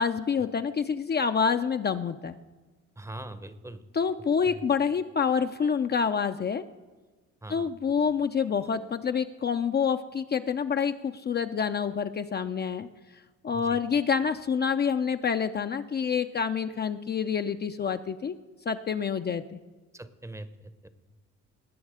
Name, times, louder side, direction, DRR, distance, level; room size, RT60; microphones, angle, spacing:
voice 1, 0.0-2.4 3.9-6.6 7.5-12.9 13.4-18.4 18.7-19.6, left 6 dB, 35° left, 8 dB, 0.5 m, -27 dB
voice 2, 3.0-3.8 4.4-4.6 7.4-7.7 13.5-13.8 19.9-20.9, right 1 dB, 10° right, 13 dB, 0.7 m, -42 dB
18.5 x 6.4 x 4.9 m, 1.3 s
cardioid pair, 90°, 30 cm